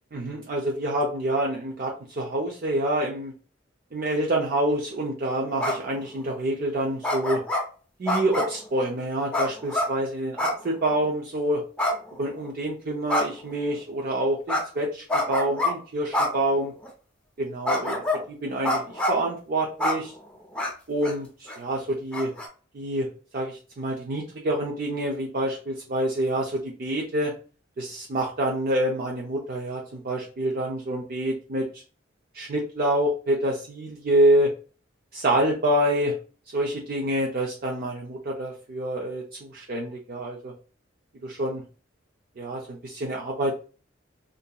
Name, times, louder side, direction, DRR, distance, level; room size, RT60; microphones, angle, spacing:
voice 1, 0.1-3.3 3.9-7.4 8.0-11.6 12.2-16.7 17.4-18.0 18.3-20.1 20.9-22.3 22.7-23.1 23.3-27.3 27.8-31.7 32.3-34.5 35.1-36.2 36.5-40.5 41.2-41.6 42.4-43.6, right 1 dB, 50° right, -1 dB, 0.5 m, -27 dB
sound 1, 5.6-6.0 7.0-7.6 8.1-8.6 9.3-9.9 10.4-10.6 10.9-11.0 11.8-12.5 13.1-13.5 14.5-14.6 15.1-15.7 16.1-16.3 16.8-16.9 17.7-18.2 18.6-19.2 19.8-20.0 20.6-20.7 21.0-21.1 21.5-21.6 22.1-22.5, left 1 dB, 5° left, 0.6 m, -26 dB
2.8 x 2.5 x 2.2 m, 0.37 s
head